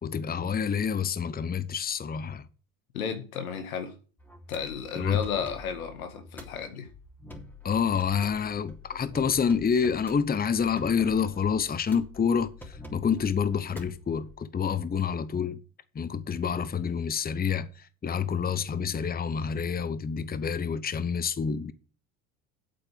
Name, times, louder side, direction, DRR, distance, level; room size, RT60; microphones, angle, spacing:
voice 1, 0.0-2.4 4.9-5.2 7.6-15.6 15.9-21.7, left 6 dB, 20° left, 1.0 m, -28 dB
voice 2, 2.9-3.9 4.5-6.9, left 7 dB, 85° left, 1.9 m, -33 dB
sound 1, 4.2-14.4, left 2 dB, 5° left, 3.3 m, -47 dB
8.6 x 8.3 x 5.1 m
hypercardioid pair, 65°, 41 cm